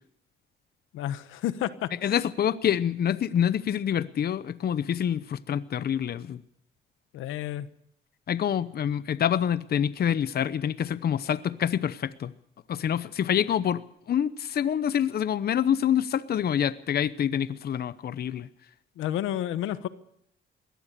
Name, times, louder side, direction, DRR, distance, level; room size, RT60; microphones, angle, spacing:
voice 1, 0.9-2.2 7.1-7.7 19.0-19.9, left 12 dB, 90° left, 14 dB, 1.1 m, -31 dB
voice 2, 2.0-6.4 8.3-12.3 12.7-18.5, left 9 dB, 50° left, 15 dB, 0.8 m, -26 dB
21.5 x 17.5 x 6.7 m, 0.73 s
cardioid pair, 90°, 20 cm